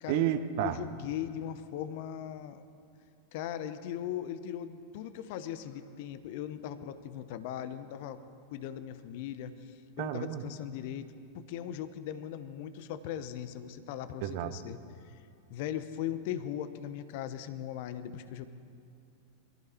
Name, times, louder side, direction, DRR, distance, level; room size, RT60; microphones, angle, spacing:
voice 1, 0.1-0.8 10.0-10.4 14.2-14.5, right 11 dB, 50° right, 12 dB, 0.8 m, -30 dB
voice 2, 0.6-2.6 3.3-8.2 8.5-14.8 15.0-15.2 15.5-18.5, left 10 dB, 50° left, 12 dB, 0.8 m, -39 dB
21.5 x 14.5 x 4.3 m, 2.4 s
figure-of-eight pair, 90°, 0 cm